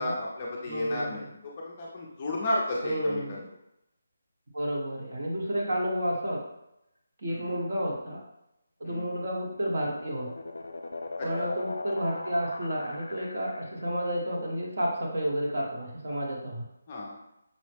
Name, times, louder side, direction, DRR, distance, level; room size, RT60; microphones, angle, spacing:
voice 1, 0.0-1.3 1.6-3.4 7.3-7.5 8.8-9.1 11.2-11.5 16.9-17.2, left 1 dB, 20° left, -4 dB, 0.5 m, -33 dB
voice 2, 0.7-1.3 2.8-3.5 4.5-6.4 7.2-8.2 8.8-10.3 11.2-16.6, equal, 45° right, -3 dB, 1.0 m, -31 dB
sound 1, 9.2-14.0, left 2 dB, 80° left, 0.4 m, -39 dB
5.3 x 2.0 x 3.3 m, 0.84 s
hypercardioid pair, 180°, 0 cm